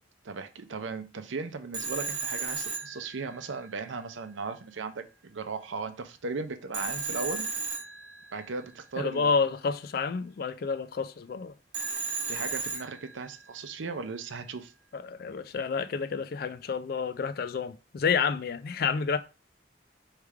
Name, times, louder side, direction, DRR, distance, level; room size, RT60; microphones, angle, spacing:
voice 1, 0.2-7.5 8.3-9.3 12.3-14.7, right 4 dB, 80° right, 0.6 m, -37 dB
Telephone, 1.7-3.7 6.7-8.5 11.7-13.4, right 4 dB, 60° right, 1.3 m, -34 dB
voice 2, 9.0-11.5 14.9-19.2, left 5 dB, 50° left, 0.3 m, -29 dB
3.4 x 3.2 x 4.7 m
head